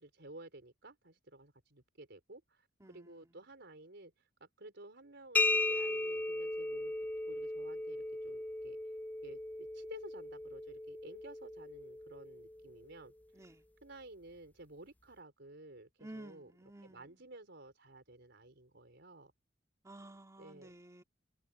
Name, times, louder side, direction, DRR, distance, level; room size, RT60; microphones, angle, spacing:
voice 1, 0.0-4.1 4.4-6.9 7.3-8.8 9.2-13.4 13.8-16.5 16.8-19.3 20.4-20.7, right 2 dB, 65° right, 4.6 m, -54 dB
voice 2, 2.8-3.4 13.3-13.6 16.0-17.2 19.8-21.0, right 1 dB, 15° right, 2.4 m, -53 dB
sound 1, 5.4-12.9, left 2 dB, 10° left, 0.4 m, -37 dB
head